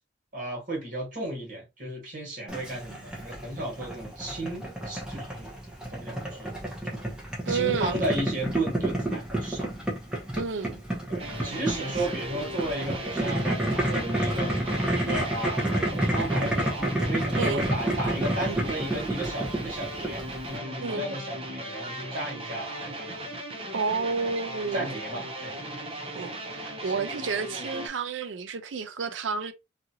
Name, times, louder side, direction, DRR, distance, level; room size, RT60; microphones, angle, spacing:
voice 1, 0.3-5.5 5.9-6.5 7.5-9.7 11.1-14.6 14.9-23.3 24.7-25.5 26.8-26.9, right 1 dB, 45° right, 1.6 m, -34 dB
Boiling, 2.5-20.6, right 1 dB, 5° right, 0.8 m, -30 dB
voice 2, 7.5-8.0 10.4-10.8 11.8-12.1 17.4-17.7 20.8-21.1 23.7-25.0 26.1-29.5, right 5 dB, 85° right, 0.5 m, -31 dB
sound 1, 11.2-27.9, right 1 dB, 30° right, 0.6 m, -37 dB
2.8 x 2.5 x 2.8 m
head